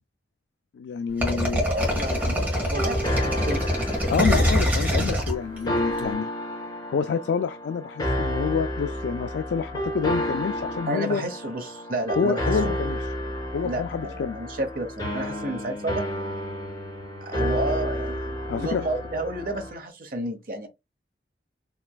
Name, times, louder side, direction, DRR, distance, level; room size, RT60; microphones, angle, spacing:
voice 1, 0.7-1.6 4.1-6.3 6.9-11.2 12.2-13.0 13.5-14.4 18.5-18.8, left 6 dB, 75° left, 0.3 m, -28 dB
sound 1, 1.2-6.0, equal, 10° right, 1.6 m, -24 dB
voice 2, 1.6-3.6 10.9-12.8 13.6-16.1 17.2-20.7, right 1 dB, 50° right, 1.0 m, -31 dB
sound 2, 1.8-19.7, equal, 25° left, 2.4 m, -31 dB
4.6 x 3.2 x 2.3 m
head